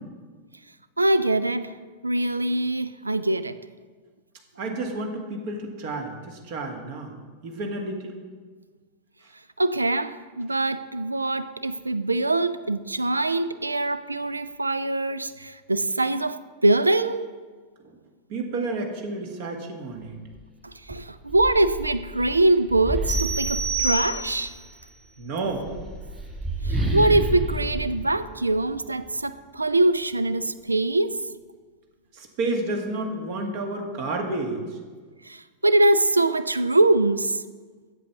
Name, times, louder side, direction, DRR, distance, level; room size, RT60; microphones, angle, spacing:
voice 1, 1.0-3.6 9.6-17.3 20.6-24.5 26.6-31.2 35.2-37.4, right 2 dB, 80° right, 0.4 m, -23 dB
voice 2, 4.6-7.1 7.4-8.2 17.8-18.0 18.3-20.2 25.2-25.7 32.1-34.6, right 2 dB, 50° right, 1.8 m, -30 dB
sound 1, 20.3-20.5 20.9-24.5 25.5-29.1, right 1 dB, 15° right, 2.9 m, -30 dB
sound 2, 23.1-24.6, right 3 dB, 30° right, 3.2 m, -28 dB
8.3 x 7.6 x 7.0 m
figure-of-eight pair, 90°, 0 cm